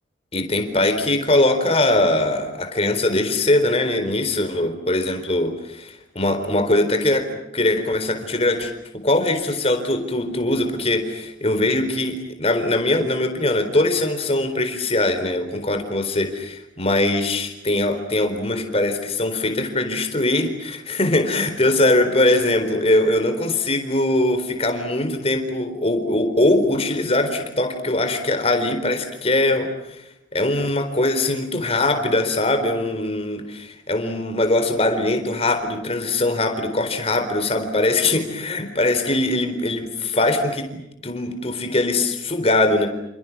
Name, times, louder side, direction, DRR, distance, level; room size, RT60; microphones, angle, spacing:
voice 1, 0.3-30.0 30.3-42.9, left 2 dB, 30° left, 7 dB, 4.2 m, -21 dB
29.5 x 28.5 x 6.1 m, 0.86 s
head